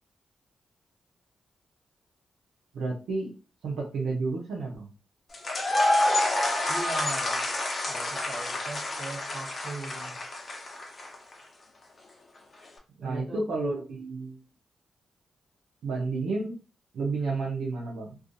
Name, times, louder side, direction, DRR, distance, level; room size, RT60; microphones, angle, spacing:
voice 1, 2.7-3.3 3.6-4.9 13.0-14.4 15.8-16.6 16.9-18.2, right 3 dB, 85° right, -2 dB, 0.7 m, -31 dB
sound 1, 5.3-11.3, left 1 dB, 50° left, 0.7 m, -28 dB
voice 2, 6.7-7.5 7.9-10.2 13.0-13.4, right 2 dB, 55° right, 0 dB, 0.8 m, -39 dB
2.4 x 2.4 x 2.6 m, 0.32 s
cardioid pair, 55°, 0 cm